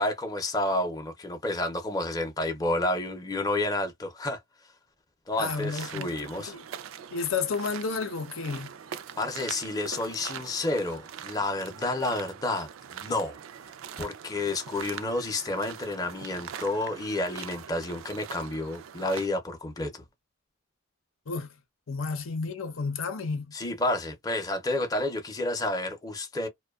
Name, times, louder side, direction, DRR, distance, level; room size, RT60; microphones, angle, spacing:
voice 1, 0.0-4.4 5.3-6.5 9.2-13.4 14.0-20.0 23.5-26.5, left 2 dB, 20° left, 0.5 m, -30 dB
sound 1, 5.3-19.3, right 8 dB, 85° right, 0.4 m, -43 dB
voice 2, 5.4-6.1 6.4-6.6 7.1-8.7 21.3-21.5 21.9-23.5, left 4 dB, 90° left, 0.7 m, -31 dB
2.5 x 2.2 x 2.2 m
head